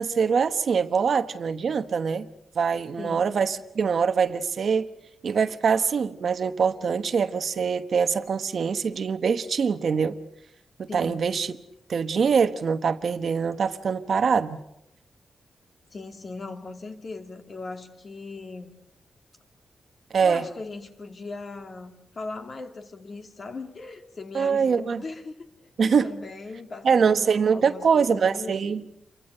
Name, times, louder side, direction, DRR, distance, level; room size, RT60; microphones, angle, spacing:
voice 1, 0.0-2.3 2.5-4.9 5.2-10.2 10.8-11.5 11.9-14.6 20.1-20.5 24.3-25.0 25.8-26.1 26.8-28.8, right 6 dB, 55° right, 1.1 m, -23 dB
voice 2, 3.0-3.3 10.9-11.2 15.9-18.7 20.2-25.7 26.0-28.5, left 3 dB, 40° left, 2.5 m, -39 dB
29.0 x 24.0 x 6.7 m
wide cardioid pair, 155°, 0 cm